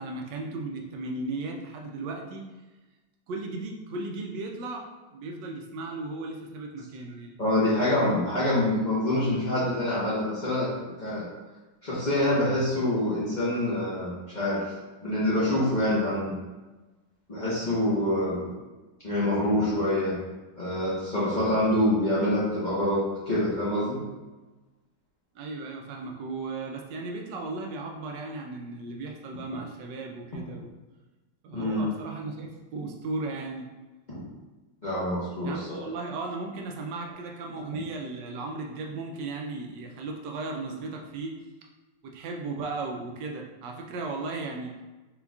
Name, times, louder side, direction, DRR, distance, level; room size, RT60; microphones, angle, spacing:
voice 1, 0.0-2.4 3.3-7.4 25.3-30.7 31.4-33.7 35.4-41.4 42.0-44.7, right 3 dB, 80° right, 1 dB, 1.2 m, -36 dB
voice 2, 7.4-10.7 11.0-11.3 11.8-14.7 15.0-16.3 17.3-18.5 19.0-20.2 20.6-24.0 31.5-31.9 34.8-35.9, left 1 dB, 35° left, -10 dB, 0.9 m, -26 dB
4.4 x 3.8 x 2.3 m, 1.2 s
omnidirectional pair, 2.0 m